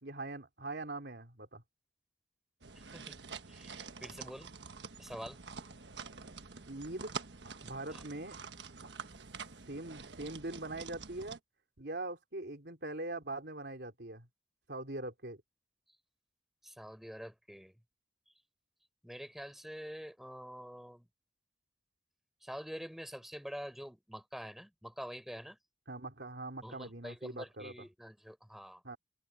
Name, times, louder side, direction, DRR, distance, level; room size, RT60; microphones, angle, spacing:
voice 1, 0.0-1.6 6.7-7.1 7.6-8.4 9.7-11.4 11.8-14.3 14.7-15.4 25.9-27.7 28.8-29.0, right 2 dB, 65° right, 3.4 m, -42 dB
sound 1, 2.6-11.4, right 5 dB, 85° right, 1.4 m, -47 dB
voice 2, 2.7-3.2 3.5-4.5 5.0-5.4 7.9-8.0 16.6-17.8 19.0-21.1 22.4-25.6 26.6-28.8, equal, ahead, 6.5 m, -46 dB
head